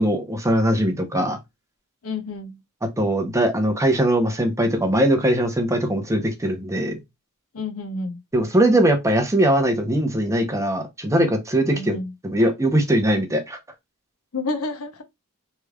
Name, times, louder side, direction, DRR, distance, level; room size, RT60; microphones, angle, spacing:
voice 1, 0.0-1.4 3.0-7.0 8.3-12.0 12.2-13.6, right 1 dB, 15° right, 0.6 m, -20 dB
voice 2, 2.0-2.6 7.5-8.2 11.7-12.1 14.3-15.0, left 3 dB, 70° left, 0.7 m, -29 dB
3.2 x 3.1 x 2.3 m
head